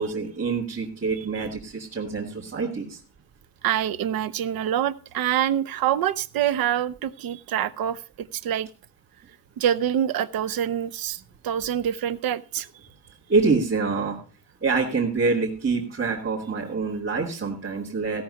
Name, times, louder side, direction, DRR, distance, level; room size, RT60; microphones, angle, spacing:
voice 1, 0.0-3.0 13.3-14.2 14.6-18.2, right 4 dB, 35° right, -5 dB, 2.4 m, -26 dB
voice 2, 3.6-8.7 9.6-12.7, right 10 dB, 65° right, 16 dB, 0.8 m, -26 dB
16.5 x 6.0 x 5.7 m, 0.36 s
cardioid pair, 155°, 37 cm